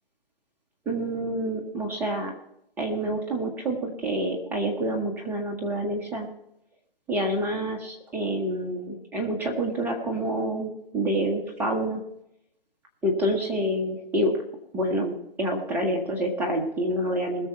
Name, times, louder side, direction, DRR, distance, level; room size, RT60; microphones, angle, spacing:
voice 1, 0.9-2.3 2.8-6.3 7.1-12.0 13.0-14.3 14.7-17.5, right 1 dB, 5° right, 1 dB, 1.0 m, -27 dB
21.0 x 7.1 x 4.3 m, 0.80 s
figure-of-eight pair, 150°, 30 cm